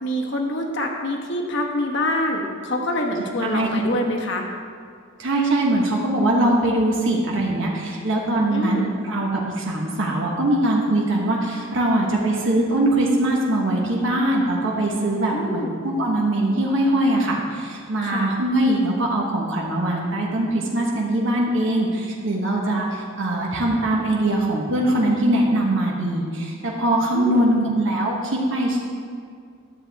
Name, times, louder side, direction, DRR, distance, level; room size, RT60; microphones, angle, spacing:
voice 1, 0.0-4.4 8.5-8.9 15.3-15.7 18.0-18.3 27.1-27.5, left 1 dB, 55° left, 1 dB, 1.1 m, -26 dB
voice 2, 5.2-28.8, right 1 dB, 60° right, -3 dB, 1.2 m, -22 dB
12.5 x 7.7 x 3.4 m, 2.2 s
head